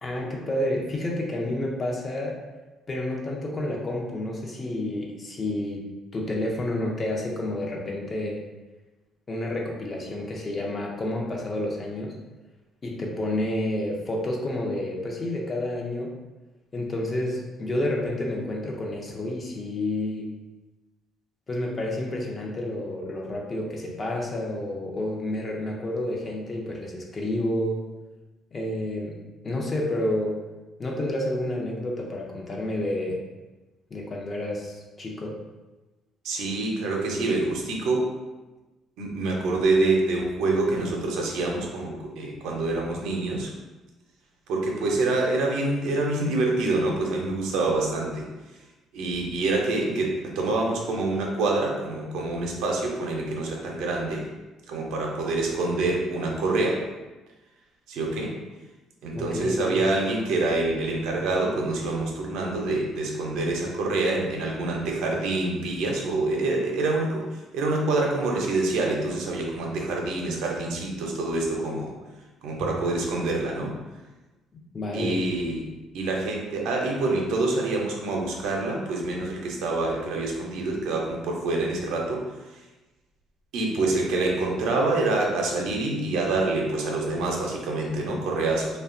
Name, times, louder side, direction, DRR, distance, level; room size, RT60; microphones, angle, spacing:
voice 1, 0.0-2.4 2.9-8.4 9.3-12.1 12.8-16.1 16.7-20.3 21.5-27.8 28.5-29.2 29.4-30.4 30.8-33.2 33.9-35.3 59.1-59.8 74.7-75.2, left 1 dB, 35° left, -1 dB, 0.6 m, -29 dB
voice 2, 36.2-38.1 39.0-43.5 44.5-48.3 48.9-54.3 54.7-56.8 57.9-58.3 59.0-71.9 72.4-73.7 74.9-82.2 83.5-88.8, right 2 dB, 80° right, 0 dB, 0.5 m, -26 dB
2.7 x 2.2 x 2.5 m, 1.1 s
supercardioid pair, 85°, 0 cm